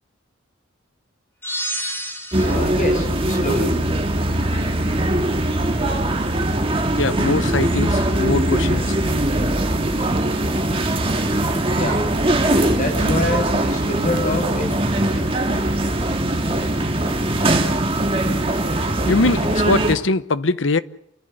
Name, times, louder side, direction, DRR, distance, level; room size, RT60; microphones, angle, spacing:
sound 1, 1.4-2.8, right 1 dB, 10° left, 4.6 m, -29 dB
sound 2, 2.3-20.0, right 1 dB, 30° right, 2.0 m, -21 dB
voice 1, 2.4-3.8 11.6-12.0 12.4-15.3, left 1 dB, 40° left, 7.0 m, -26 dB
voice 2, 7.0-8.9 19.1-20.8, left 3 dB, 75° left, 0.9 m, -21 dB
29.0 x 11.5 x 9.9 m
head